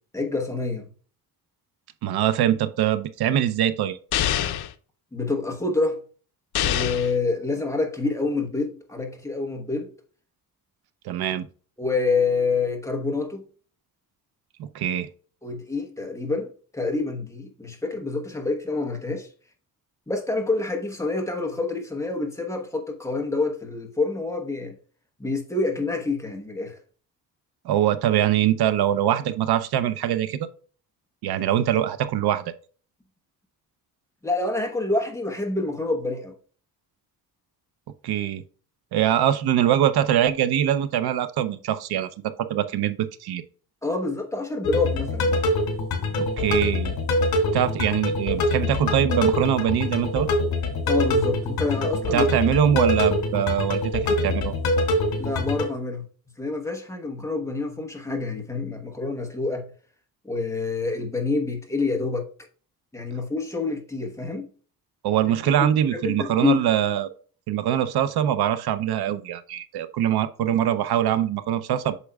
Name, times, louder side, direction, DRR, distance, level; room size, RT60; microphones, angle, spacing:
voice 1, 0.1-0.9 5.1-6.0 6.6-9.9 11.8-13.4 15.4-16.5 16.7-19.3 20.1-24.8 25.2-26.8 34.2-36.3 43.8-45.4 50.9-52.2 55.2-56.0 56.4-59.7 60.2-62.3 62.9-64.5 65.5-65.6 65.9-66.6, left 3 dB, 10° left, 1.0 m, -27 dB
voice 2, 2.0-4.0 11.0-11.5 14.6-15.1 27.6-30.5 31.2-32.4 38.0-38.4 38.9-43.4 46.2-46.9 47.5-50.3 52.1-54.6 65.0-67.1 67.5-72.0, right 10 dB, 80° right, 0.7 m, -23 dB
sound 1, 4.1-4.7 6.5-7.1, left 11 dB, 85° left, 0.7 m, -24 dB
sound 2, 44.6-55.6, left 1 dB, 70° left, 2.6 m, -24 dB
8.2 x 6.3 x 2.3 m
wide cardioid pair, 170°, 37 cm